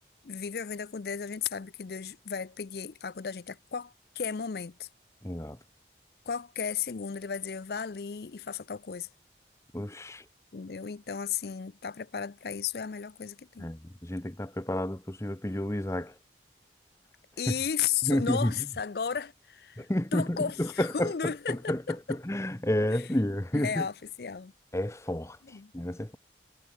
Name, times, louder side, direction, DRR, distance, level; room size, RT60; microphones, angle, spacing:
voice 1, 0.2-4.9 6.3-9.1 10.5-13.7 17.4-22.2 22.9-23.0 23.5-24.5 25.4-25.7, left 7 dB, 60° left, 0.5 m, -34 dB
voice 2, 5.2-5.6 9.7-10.2 13.6-16.1 18.0-18.5 19.8-21.1 21.5-21.8 22.1-23.9 24.7-25.4 25.7-26.2, left 1 dB, 15° left, 0.9 m, -30 dB
head